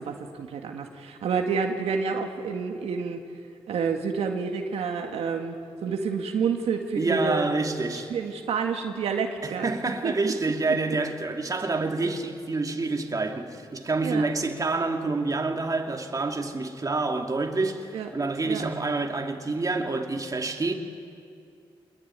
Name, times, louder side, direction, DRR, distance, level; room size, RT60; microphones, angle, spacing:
voice 1, 0.0-3.2 3.7-5.6 5.8-7.4 7.9-9.7 10.0-10.1 14.0-14.3 17.9-18.1 18.5-18.7, right 5 dB, 85° right, 2.0 m, -29 dB
voice 2, 7.0-8.1 9.4-20.8, right 3 dB, 35° right, 2.7 m, -27 dB
24.0 x 22.0 x 9.9 m
cardioid pair, 70°, 10 cm